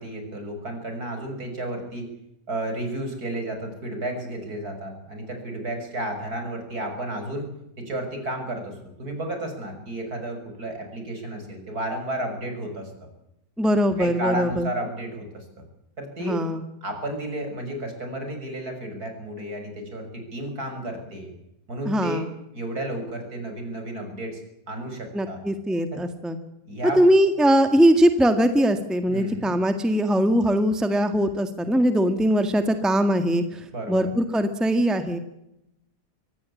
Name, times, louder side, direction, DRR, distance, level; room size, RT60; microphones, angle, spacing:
voice 1, 0.0-2.1 2.5-7.5 7.8-12.9 14.0-15.5 16.0-16.4 16.8-21.3 21.7-22.3 22.5-24.4 24.7-25.4 25.9-26.0 26.7-27.0 29.1-29.5 33.7-34.1, right 1 dB, 60° right, 5 dB, 6.9 m, -32 dB
voice 2, 13.6-14.7 16.2-16.6 21.8-22.3 25.1-26.4 27.0-35.2, equal, ahead, 8 dB, 1.7 m, -21 dB
24.5 x 17.5 x 8.6 m, 0.84 s
omnidirectional pair, 1.8 m